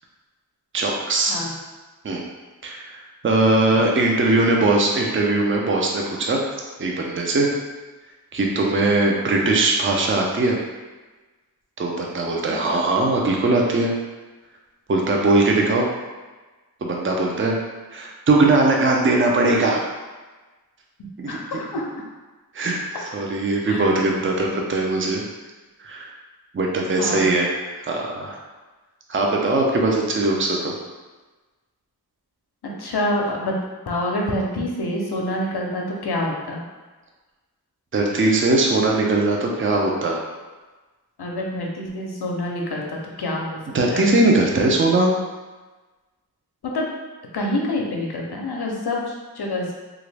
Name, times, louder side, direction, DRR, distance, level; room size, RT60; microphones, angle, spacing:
voice 1, 0.7-1.4 2.0-2.2 2.6-6.4 6.8-7.5 8.3-10.6 11.8-13.9 14.9-15.9 16.8-17.5 17.9-19.8 21.2-21.4 22.5-22.8 23.1-25.2 25.8-26.1 26.5-28.4 29.1-30.7 37.9-40.2 43.7-45.1, right 2 dB, 35° right, -1 dB, 0.5 m, -20 dB
voice 2, 12.5-12.8 21.3-21.9 23.7-23.9 27.0-27.4 32.6-33.5 33.9-36.6 41.2-43.6 43.9-44.0 46.6-46.9 47.3-49.7, left 1 dB, 85° left, -1 dB, 0.6 m, -27 dB
3.0 x 2.5 x 3.2 m, 1.2 s
wide cardioid pair, 60°, 38 cm